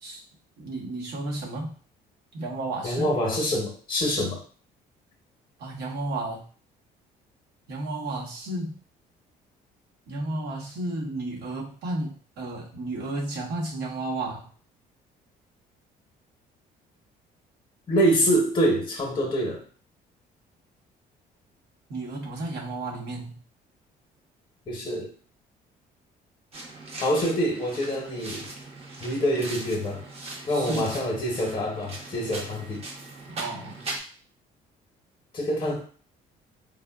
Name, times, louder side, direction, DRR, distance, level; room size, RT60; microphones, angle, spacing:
voice 1, 0.6-1.7 2.3-3.1 5.6-6.4 7.7-8.8 10.1-14.5 21.9-23.4 30.5-30.9 33.3-33.8, right 2 dB, 75° right, -2 dB, 0.9 m, -32 dB
voice 2, 2.8-4.4 17.9-19.6 24.7-25.1 27.0-28.5 29.0-30.1 30.5-32.9 35.3-35.8, equal, 30° left, 0 dB, 0.8 m, -25 dB
sound 1, 26.5-34.0, right 2 dB, 35° right, 0.7 m, -40 dB
3.5 x 2.0 x 2.3 m, 0.42 s
cardioid pair, 110°, 17 cm